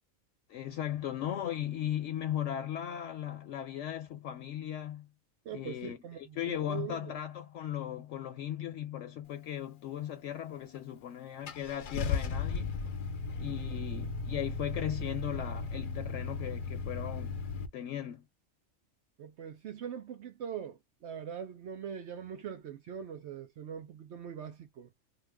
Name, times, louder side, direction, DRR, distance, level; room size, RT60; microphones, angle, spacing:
voice 1, 0.5-5.1 5.5-6.0 6.4-12.9 13.4-17.4 17.7-18.2, left 11 dB, 70° left, 0.9 m, -37 dB
voice 2, 5.4-7.1 19.2-24.9, right 8 dB, 65° right, 0.8 m, -42 dB
Car / Engine starting, 10.8-10.9 11.5-17.7, left 4 dB, 55° left, 0.6 m, -36 dB
3.2 x 2.1 x 3.4 m
omnidirectional pair, 1.3 m